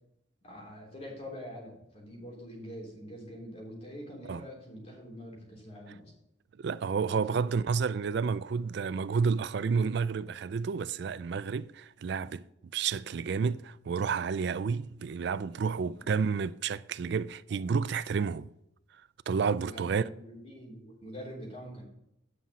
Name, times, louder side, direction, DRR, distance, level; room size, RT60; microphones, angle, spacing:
voice 1, 0.4-6.1 7.0-7.4 15.9-16.1 19.7-21.8, equal, 35° left, 3.4 m, -45 dB
voice 2, 6.6-12.4 12.7-18.5 19.3-20.1, right 5 dB, 60° right, 0.4 m, -30 dB
9.9 x 5.7 x 5.4 m
head